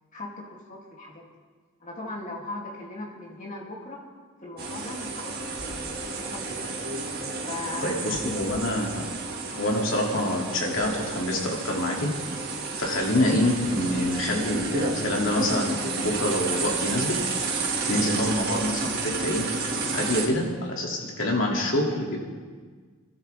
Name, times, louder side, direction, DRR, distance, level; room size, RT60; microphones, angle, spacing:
voice 1, 0.1-1.3 1.8-4.1 4.4-6.7 7.4-8.0 8.4-8.5, left 2 dB, 35° left, -2 dB, 2.7 m, -39 dB
sound 1, 4.6-20.3, right 3 dB, 45° right, 2.0 m, -31 dB
voice 2, 7.8-9.0 9.5-12.1 12.8-17.1 17.9-19.4 19.9-22.2, left 1 dB, 60° left, -1 dB, 2.6 m, -26 dB
25.5 x 13.0 x 3.5 m, 1.5 s
head